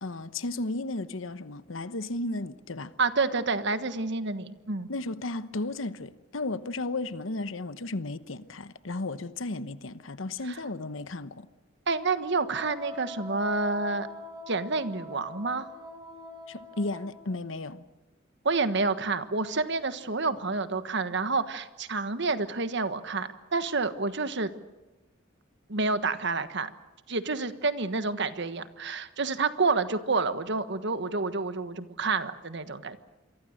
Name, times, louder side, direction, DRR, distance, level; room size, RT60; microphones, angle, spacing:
voice 1, 0.0-2.9 4.9-11.5 16.5-17.9, left 2 dB, 85° left, 1.1 m, -34 dB
voice 2, 3.0-4.9 10.4-10.6 11.9-14.1 14.5-15.7 18.4-24.5 25.7-26.7 27.1-33.0, right 3 dB, 65° right, 1.4 m, -29 dB
Wind instrument woodwind instrument, 12.5-17.2, left 1 dB, 20° right, 5.8 m, -43 dB
27.5 x 23.5 x 6.6 m
head